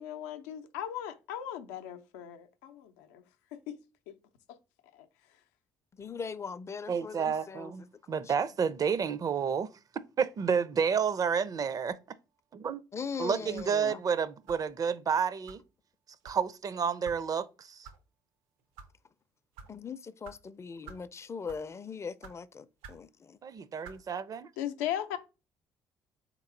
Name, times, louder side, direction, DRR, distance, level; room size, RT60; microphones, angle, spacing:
voice 1, 0.0-3.2 3.5-3.8 4.1-4.2 4.5-4.6 4.9-5.1 24.6-25.2, left 11 dB, 85° left, 0.5 m, -38 dB
voice 2, 6.0-7.7 8.1-8.3 12.9-14.0 19.7-23.4, left 5 dB, 30° left, 0.4 m, -40 dB
voice 3, 6.9-9.7 10.2-12.0 12.5-12.8 13.2-15.6 16.2-17.9 23.4-24.5, right 6 dB, 40° right, 0.5 m, -30 dB
sound 1, 13.5-13.8 14.5-14.7 15.5-15.6 16.2-16.4 17.0-17.2 17.8-18.0 18.6-18.9 19.5-19.7 20.2-20.4 20.8-21.1 21.4-21.7 22.2-22.4 22.8-23.0 23.8-24.0, right 5 dB, 80° right, 0.7 m, -49 dB
4.0 x 3.0 x 3.8 m
hypercardioid pair, 55°, 9 cm